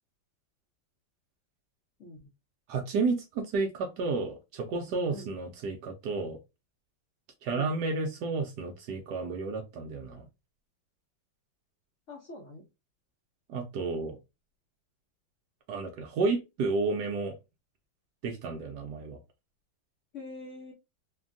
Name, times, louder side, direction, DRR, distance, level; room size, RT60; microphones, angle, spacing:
voice 1, 2.7-6.4 7.4-10.3 13.5-14.2 15.7-17.3 18.2-19.2, right 4 dB, 75° right, 1.0 m, -31 dB
voice 2, 12.1-12.6 20.1-20.7, left 2 dB, 60° left, 0.8 m, -44 dB
3.2 x 2.2 x 2.5 m
omnidirectional pair, 2.2 m